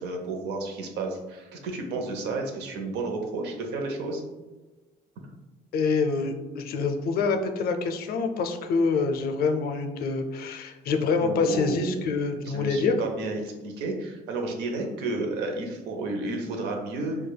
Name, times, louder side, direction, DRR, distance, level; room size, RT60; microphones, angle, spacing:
voice 1, 0.0-4.2 11.2-12.0 12.4-17.2, right 2 dB, 85° right, 2 dB, 0.7 m, -32 dB
voice 2, 5.7-13.0, left 4 dB, 65° left, 6 dB, 0.4 m, -26 dB
4.8 x 2.3 x 2.2 m, 1.2 s
cardioid pair, 110°, 17 cm